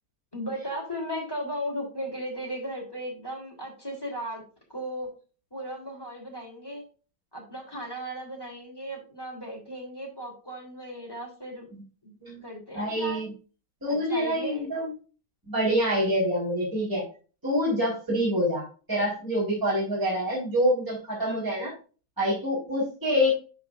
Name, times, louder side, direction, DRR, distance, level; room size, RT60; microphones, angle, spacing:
voice 1, 0.3-4.4 4.7-5.1 5.5-6.8 7.3-11.7 12.0-12.1 12.4-13.3 13.9-14.9, equal, 10° left, -1 dB, 3.2 m, -36 dB
voice 2, 12.7-13.3 13.8-14.9 15.5-17.0 17.4-21.7 22.2-23.3, equal, 10° right, -6 dB, 4.2 m, -26 dB
12.5 x 4.9 x 2.5 m, 0.36 s
omnidirectional pair, 2.1 m